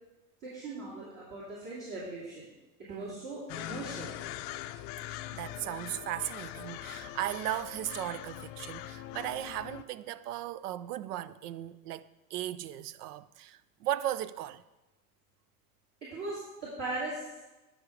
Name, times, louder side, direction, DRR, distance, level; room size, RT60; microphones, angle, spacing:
voice 1, 0.4-2.5 2.9-4.1 16.0-17.4, right 2 dB, 45° right, 2.6 m, -39 dB
voice 2, 2.9-3.3 5.1-14.6, right 13 dB, 75° right, 0.5 m, -37 dB
sound 1, 3.5-9.8, left 14 dB, 50° left, 0.5 m, -42 dB
9.8 x 5.1 x 4.7 m
hypercardioid pair, 95°, 46 cm